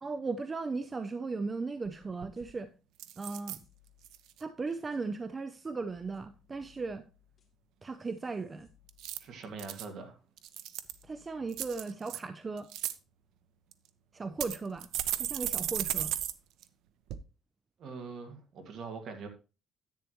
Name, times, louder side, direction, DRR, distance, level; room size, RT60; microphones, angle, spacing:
voice 1, 0.0-2.7 3.2-3.6 4.4-7.0 7.8-8.7 11.0-12.7 14.1-14.9 15.2-16.1, right 4 dB, 20° right, 0.5 m, -37 dB
sound 1, 1.9-2.0 2.2-2.6 3.0-3.6 4.0-4.4 8.9-9.9 10.4-11.0 11.5-12.2 12.6-12.9 13.7-13.8 14.4-16.3 16.6-16.7 17.1-17.2, right 12 dB, 80° right, 0.6 m, -35 dB
sound 2, 2.3-2.6 3.0-4.5 4.9-5.0 5.6-5.7 5.9-9.6 9.9-10.0 10.5-10.6 10.8-11.8, left 8 dB, 35° left, 2.5 m, -66 dB
voice 2, 9.2-10.2 17.8-19.3, right 4 dB, 55° right, 2.0 m, -43 dB
10.5 x 8.5 x 3.0 m
cardioid pair, 150°, 0 cm